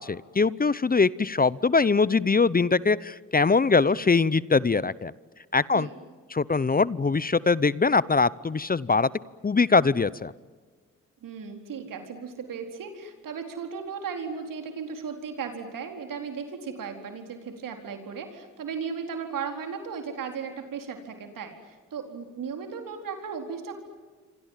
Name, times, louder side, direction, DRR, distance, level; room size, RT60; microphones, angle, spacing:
voice 1, 0.0-5.1 5.5-5.9 6.3-9.1 9.4-10.3, left 4 dB, 25° left, 21 dB, 0.8 m, -22 dB
voice 2, 11.2-23.8, right 6 dB, 75° right, 5 dB, 4.3 m, -36 dB
28.0 x 24.5 x 7.5 m, 1.5 s
supercardioid pair, 45°, 33 cm